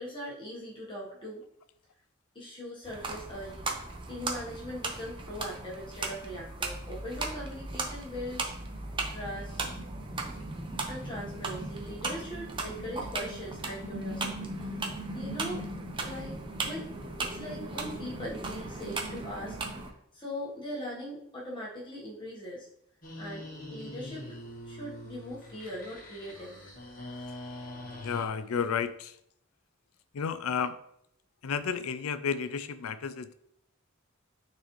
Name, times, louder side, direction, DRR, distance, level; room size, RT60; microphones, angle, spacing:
voice 1, 0.0-1.4 2.3-3.7 4.1-8.5 9.1-9.8 10.9-14.8 15.1-15.6 16.0-19.6 20.1-22.7 23.2-24.4 24.6-26.7, equal, 25° left, -4 dB, 1.3 m, -40 dB
sound 1, 2.9-19.9, right 2 dB, 25° right, 0.7 m, -37 dB
sound 2, 23.0-28.3, left 1 dB, 40° left, 1.3 m, -43 dB
voice 2, 28.0-29.2 30.1-30.8 31.4-33.3, left 6 dB, 90° left, 13 dB, 0.5 m, -32 dB
9.3 x 4.1 x 3.1 m, 0.73 s
head